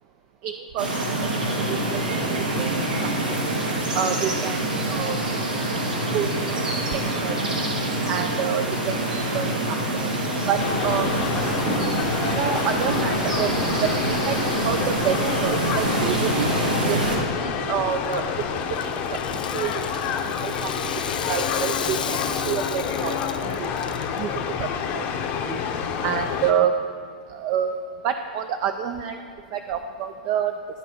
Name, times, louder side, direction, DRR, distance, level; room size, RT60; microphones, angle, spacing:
voice 1, 0.4-0.9 1.2-2.7 3.0-3.1 3.9-4.6 4.9-5.2 6.1-6.6 6.9-7.3 8.1-9.0 9.3-10.0 10.5-11.1 12.4-13.5 13.8-16.5 16.9-18.2 18.5-19.7 20.2-20.7 21.3-23.1 23.4-23.7 24.2-24.3 24.6-25.0 25.4-25.6 26.0-26.7 27.3-27.8 28.0-29.2 29.5-30.5, right 9 dB, 45° right, 7 dB, 0.4 m, -28 dB
sound 1, 0.8-17.2, right 1 dB, 85° right, 1.9 m, -25 dB
sound 2, 10.6-26.5, left 6 dB, 40° left, 0.8 m, -28 dB
Rattle (instrument), 18.0-24.2, left 7 dB, 80° left, 0.5 m, -35 dB
12.0 x 4.2 x 5.6 m, 2.3 s
hypercardioid pair, 110°, 5 cm